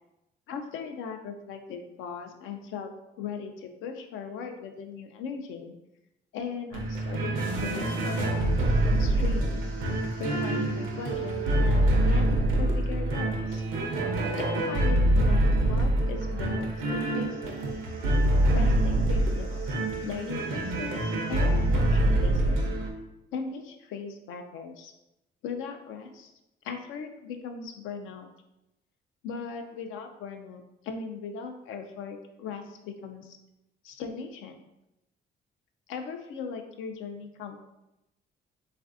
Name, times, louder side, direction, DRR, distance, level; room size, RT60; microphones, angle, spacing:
voice 1, 0.5-2.9 3.2-5.8 6.3-9.7 10.2-13.6 14.4-17.5 18.5-19.7 20.0-22.6 23.3-24.9 25.4-26.3 26.6-28.3 29.2-33.4 33.8-34.6 35.9-37.6, left 6 dB, 85° left, 5 dB, 0.4 m, -38 dB
sound 1, 6.7-22.9, right 1 dB, 85° right, 0.6 m, -25 dB
3.2 x 2.5 x 2.4 m, 0.91 s
cardioid pair, 90°, 20 cm